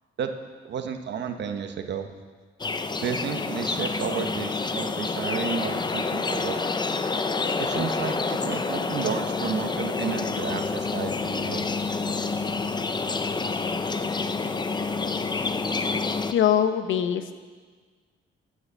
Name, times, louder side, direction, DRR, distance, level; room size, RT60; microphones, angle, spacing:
voice 1, 0.6-2.1 3.0-6.7 7.6-11.7, right 7 dB, 65° right, 7 dB, 1.1 m, -32 dB
sound 1, 2.6-16.3, left 4 dB, 20° left, 0.6 m, -28 dB
voice 2, 16.3-17.5, left 9 dB, 75° left, 10 dB, 0.8 m, -23 dB
13.0 x 6.4 x 7.4 m, 1.5 s
cardioid pair, 90°, 20 cm